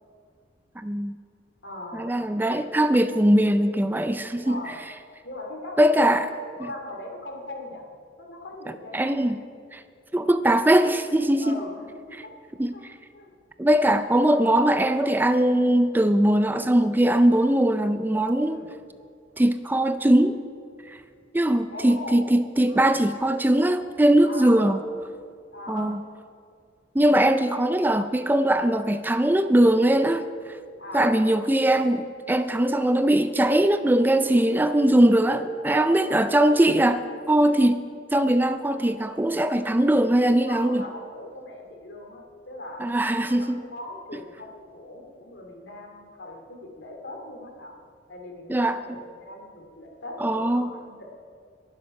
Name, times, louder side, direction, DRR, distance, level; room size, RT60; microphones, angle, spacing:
voice 1, 0.8-1.2 1.9-4.6 5.8-6.3 8.9-9.4 9.7-9.8 10.1-11.6 12.6-12.9 13.6-18.6 19.4-20.4 20.9-21.0 21.3-24.8 25.7-26.0 26.9-30.3 30.9-37.9 38.1-40.9 42.8-43.6 48.5-49.0 50.2-50.7, right 1 dB, 10° right, 10 dB, 0.4 m, -21 dB
voice 2, 1.6-2.1 4.2-4.8 5.2-6.1 6.6-7.8 8.2-9.3 11.4-12.3 12.7-12.8 13.1-13.3 18.4-18.7 21.7-22.3 22.7-23.0 24.2-24.8 25.5-26.0 30.8-31.5 34.2-34.3 35.4-36.0 39.5-39.9 40.3-42.9 43.3-47.7 48.1-51.1, left 2 dB, 70° left, 1 dB, 2.6 m, -40 dB
21.0 x 7.7 x 5.5 m, 2.3 s
head